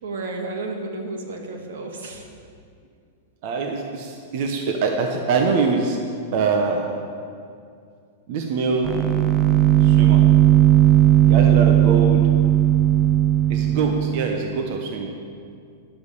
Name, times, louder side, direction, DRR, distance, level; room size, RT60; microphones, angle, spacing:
voice 1, 0.0-2.3, right 2 dB, 85° right, 2 dB, 2.2 m, -32 dB
voice 2, 3.4-6.0 6.3-6.9 8.3-8.9 9.8-10.2 11.3-12.2 13.5-15.1, right 4 dB, 45° right, 3 dB, 1.1 m, -24 dB
sound 1, 8.8-14.2, right 12 dB, 15° right, 0.6 m, -16 dB
10.5 x 10.5 x 6.9 m, 2.3 s
supercardioid pair, 165°, 0 cm